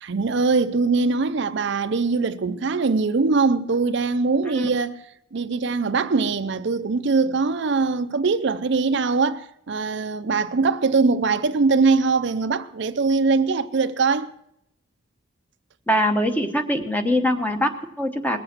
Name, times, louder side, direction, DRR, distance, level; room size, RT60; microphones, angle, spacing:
voice 1, 0.0-4.9 5.3-14.3, right 4 dB, 60° right, 0.5 m, -22 dB
voice 2, 15.9-18.4, equal, 10° left, 1.0 m, -23 dB
20.0 x 7.9 x 5.9 m
head